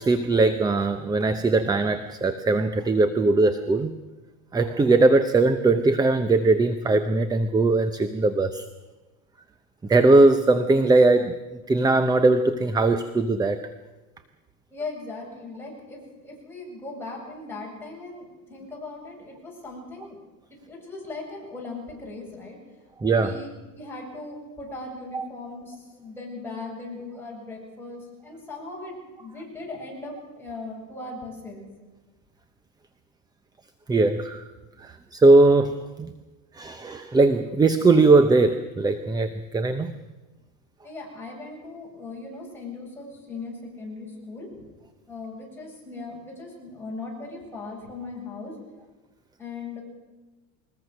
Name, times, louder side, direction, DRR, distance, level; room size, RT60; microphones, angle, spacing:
voice 1, 0.0-3.9 4.5-8.6 9.9-11.3 11.7-13.6 23.0-23.4 25.1-25.3 33.9-34.4 34.8-36.1 36.6-39.9, right 3 dB, 10° right, 11 dB, 0.7 m, -20 dB
voice 2, 14.7-20.2 20.6-22.6 23.1-31.7 40.8-44.6 45.1-48.5 49.4-49.8, left 3 dB, 5° left, -4 dB, 7.7 m, -38 dB
21.5 x 20.5 x 6.5 m, 1.1 s
supercardioid pair, 145°, 40 cm